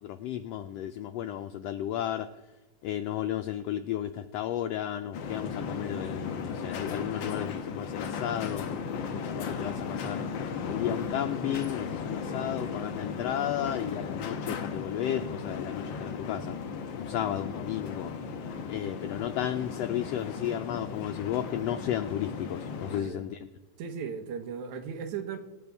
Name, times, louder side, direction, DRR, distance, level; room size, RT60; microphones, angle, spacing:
voice 1, 0.0-2.3 2.8-8.6 9.1-10.3 10.7-16.5 16.9-18.1 18.7-23.5, left 11 dB, 90° left, 1.4 m, -33 dB
sound 1, 5.1-23.0, left 5 dB, 65° left, 1.2 m, -36 dB
voice 2, 23.8-25.4, right 6 dB, 80° right, 2.5 m, -36 dB
25.5 x 9.6 x 3.5 m
omnidirectional pair, 3.4 m